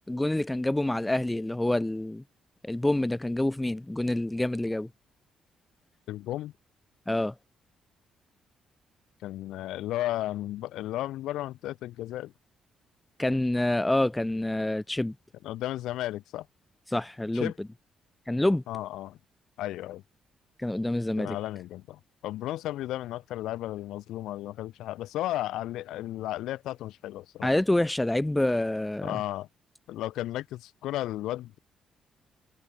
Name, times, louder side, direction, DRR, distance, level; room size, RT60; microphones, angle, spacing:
voice 1, 0.1-2.2 2.6-4.9 7.1-7.3 13.2-15.2 16.9-17.7 18.3-18.6 20.6-21.4 27.4-29.2, left 1 dB, 10° left, 0.5 m, -27 dB
voice 2, 6.1-6.5 9.2-12.3 15.4-16.5 17.3-17.5 18.7-19.2 19.6-20.0 21.2-27.5 29.0-29.5 29.9-31.6, left 14 dB, 85° left, 0.5 m, -34 dB
cardioid pair, 90°, 0 cm